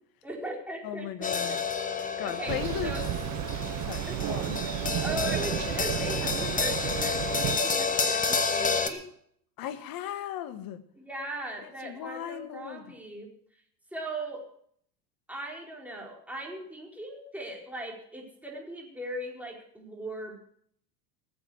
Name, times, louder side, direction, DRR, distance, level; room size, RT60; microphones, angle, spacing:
voice 1, 0.2-1.6 2.2-3.0 4.1-4.2 4.6-4.7 5.0-9.1 11.0-13.3 13.9-14.5 15.3-20.4, right 1 dB, 5° right, -1 dB, 4.6 m, -39 dB
voice 2, 0.8-1.6 2.2-3.0 3.9-4.7 9.6-10.8 11.8-12.9, left 11 dB, 45° left, 11 dB, 1.6 m, -36 dB
sound 1, 1.2-8.9, left 4 dB, 15° left, 1.6 m, -30 dB
Thunder, 2.5-7.6, right 16 dB, 35° right, 0.6 m, -32 dB
19.0 x 7.8 x 6.3 m, 0.65 s
hypercardioid pair, 90°, 48 cm